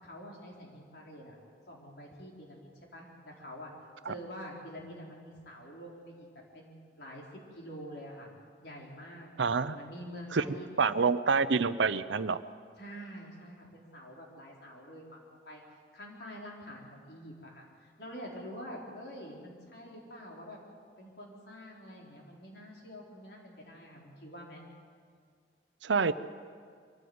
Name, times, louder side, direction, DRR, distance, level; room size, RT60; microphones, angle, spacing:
voice 1, 0.0-1.4 1.7-3.7 4.1-6.3 6.5-7.2 7.5-8.3 8.6-9.3 9.7-10.7 12.8-15.6 15.9-20.6 21.0-24.6, equal, 65° left, -2 dB, 4.3 m, -46 dB
voice 2, 9.4-9.8 10.3-10.4 10.8-12.4 25.8-26.1, right 5 dB, 85° right, 14 dB, 0.7 m, -27 dB
23.5 x 15.0 x 8.0 m, 2.1 s
head